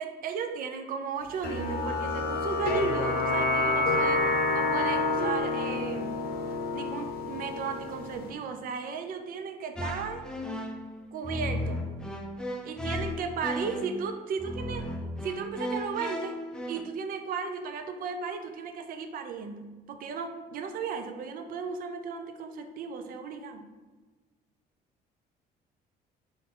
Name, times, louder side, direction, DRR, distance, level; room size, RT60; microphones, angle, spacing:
voice 1, 0.0-6.2 6.7-10.3 11.1-11.9 12.6-14.9 15.2-16.4 16.7-23.7, right 6 dB, 55° right, 7 dB, 0.5 m, -35 dB
sound 1, 1.4-8.3, left 3 dB, 65° left, 0.7 m, -28 dB
sound 2, 9.8-16.8, left 1 dB, 5° left, 0.4 m, -35 dB
3.7 x 2.5 x 3.7 m, 1.3 s
cardioid pair, 110°, 17 cm